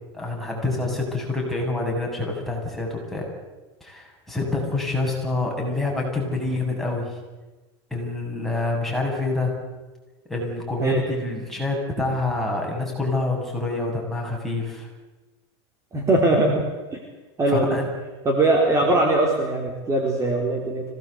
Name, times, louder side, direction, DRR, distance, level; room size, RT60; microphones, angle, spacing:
voice 1, 0.1-3.3 3.8-7.1 7.9-9.5 10.3-14.9 17.5-17.9, left 2 dB, ahead, -2 dB, 7.9 m, -27 dB
voice 2, 15.9-16.6 16.9-17.0 17.4-17.8 18.2-20.8, right 2 dB, 20° right, 0 dB, 4.4 m, -21 dB
25.5 x 18.5 x 8.2 m, 1.2 s
supercardioid pair, 130°, 14 cm